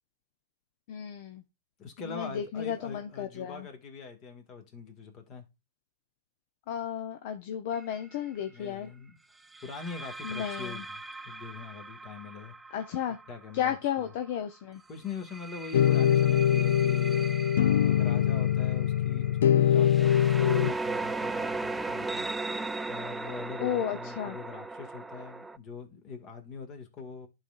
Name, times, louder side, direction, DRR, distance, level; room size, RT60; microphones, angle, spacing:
voice 1, 0.9-1.4 2.1-3.7 6.7-8.9 10.2-10.8 12.7-13.2 13.5-14.8 23.6-24.4, left 9 dB, 60° left, 0.7 m, -33 dB
voice 2, 1.8-5.4 8.4-9.2 9.6-12.6 13.1-14.1 14.9-17.4 17.9-22.3 22.9-27.3, left 5 dB, 40° left, 1.9 m, -43 dB
sound 1, 7.7-8.0 9.5-14.3 15.1-25.6, right 3 dB, 5° right, 0.4 m, -38 dB
sound 2, 15.7-20.7, left 10 dB, 80° left, 0.3 m, -23 dB
11.5 x 4.1 x 2.4 m
hypercardioid pair, 125°, 0 cm